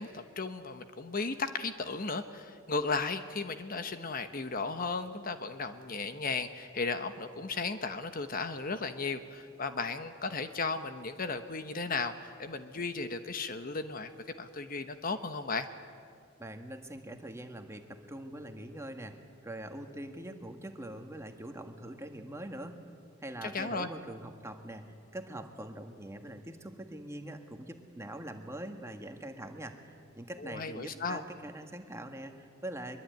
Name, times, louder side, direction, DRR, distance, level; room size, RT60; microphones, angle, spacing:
voice 1, 0.0-14.1 14.4-15.7 23.4-23.9 30.4-31.2, left 4 dB, 45° left, 9 dB, 1.1 m, -35 dB
voice 2, 16.4-19.2 19.4-22.8 23.2-33.0, right 1 dB, 15° right, 5 dB, 1.7 m, -43 dB
23.5 x 22.5 x 9.4 m, 2.3 s
head